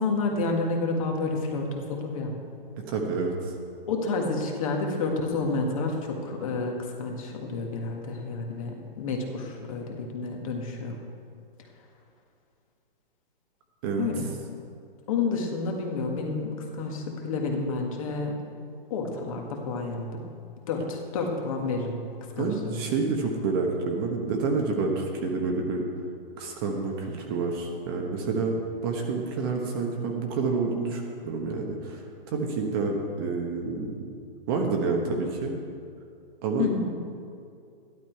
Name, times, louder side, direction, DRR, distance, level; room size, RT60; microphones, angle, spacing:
voice 1, 0.0-2.3 3.9-11.0 14.0-14.3 15.1-18.3 18.9-20.2 20.7-22.0 22.4-22.8 36.6-36.9, left 3 dB, 35° left, 1 dB, 1.8 m, -29 dB
voice 2, 2.8-3.5 13.8-14.1 22.4-25.9 26.4-34.1 34.5-35.6 36.4-36.7, right 4 dB, 25° right, 1 dB, 1.1 m, -28 dB
13.5 x 12.0 x 4.6 m, 2.5 s
hypercardioid pair, 165°, 29 cm